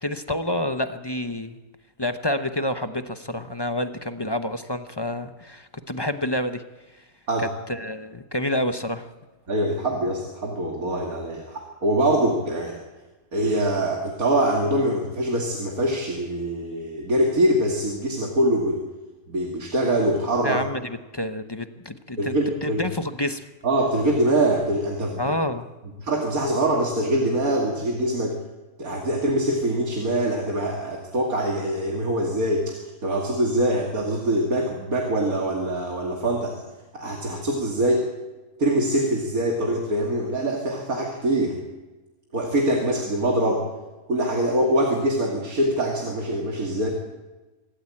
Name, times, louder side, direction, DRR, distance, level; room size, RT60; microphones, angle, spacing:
voice 1, 0.0-1.6 2.0-6.6 6.9-7.0 7.7-9.1 20.4-22.3 22.6-23.5 25.2-25.7, left 1 dB, 20° left, 9 dB, 0.8 m, -28 dB
voice 2, 9.5-12.8 13.3-18.8 19.3-20.6 22.2-22.8 23.6-25.3 26.0-28.4 28.8-36.6 36.9-38.1 38.6-41.6 42.3-43.6 44.1-46.9, right 1 dB, 75° right, 0 dB, 2.9 m, -24 dB
25.0 x 14.0 x 8.6 m, 1.2 s
omnidirectional pair, 1.5 m